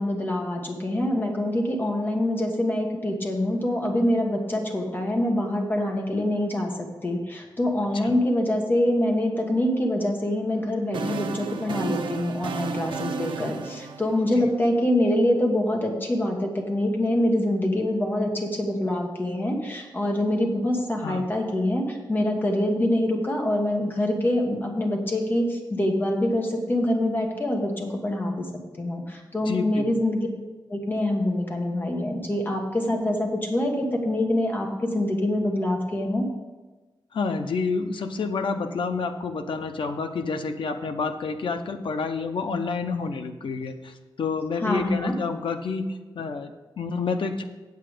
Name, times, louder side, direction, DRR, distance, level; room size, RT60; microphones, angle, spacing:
voice 1, 0.0-28.5 28.8-30.3 30.7-36.3 44.6-45.1, left 1 dB, 25° left, 1 dB, 1.4 m, -25 dB
sound 1, 10.5-14.7, right 5 dB, 75° right, 0.7 m, -33 dB
voice 2, 29.4-29.9 37.1-47.4, left 4 dB, 85° left, 7 dB, 0.8 m, -29 dB
8.2 x 8.0 x 5.0 m, 1.2 s
wide cardioid pair, 175°, 8 cm